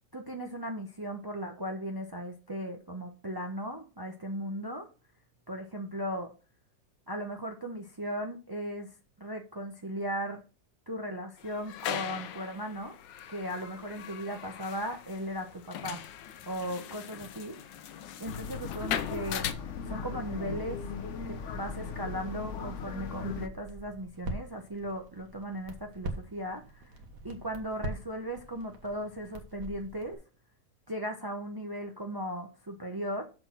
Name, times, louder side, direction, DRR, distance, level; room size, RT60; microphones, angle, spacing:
voice 1, 0.1-4.9 5.5-6.3 7.1-10.4 10.9-12.9 13.3-16.0 16.5-17.8 18.2-19.5 19.9-20.8 21.3-26.9 27.2-30.2 30.9-33.2, equal, 35° right, 3 dB, 0.3 m, -37 dB
sound 1, 11.4-19.5, left 10 dB, 80° left, 1.4 m, -40 dB
sound 2, 18.2-23.5, left 6 dB, 55° left, 0.8 m, -38 dB
Crackle, 19.3-30.1, right 1 dB, 65° right, 1.9 m, -44 dB
6.7 x 6.0 x 5.7 m, 0.35 s
omnidirectional pair, 2.0 m